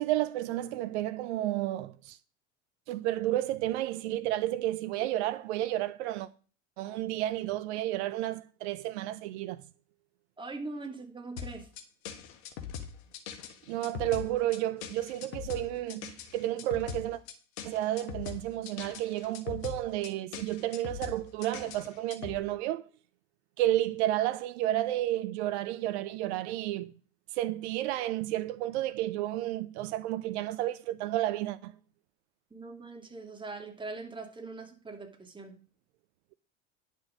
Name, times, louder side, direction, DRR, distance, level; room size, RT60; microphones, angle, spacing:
voice 1, 0.0-2.2 2.9-6.3 6.8-9.6 13.7-17.2 17.6-22.9 23.6-26.9 27.3-31.7, right 14 dB, 65° right, 0.7 m, -31 dB
voice 2, 10.4-11.7 32.5-35.5, right 3 dB, 15° right, 2.7 m, -42 dB
sound 1, 11.4-22.4, left 8 dB, 65° left, 1.7 m, -41 dB
10.5 x 6.3 x 5.2 m
hypercardioid pair, 80°, 37 cm